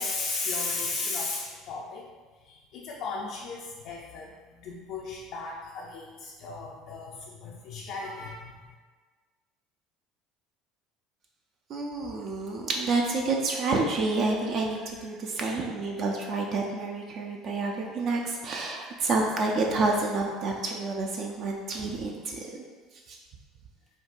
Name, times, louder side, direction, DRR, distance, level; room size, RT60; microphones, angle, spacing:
voice 1, 0.0-2.1 2.4-8.6, left 3 dB, 65° left, -2 dB, 0.4 m, -35 dB
voice 2, 11.7-22.7 23.1-23.2, right 3 dB, 55° right, 0 dB, 0.4 m, -29 dB
4.4 x 2.3 x 2.5 m, 1.4 s
supercardioid pair, 100°, 0 cm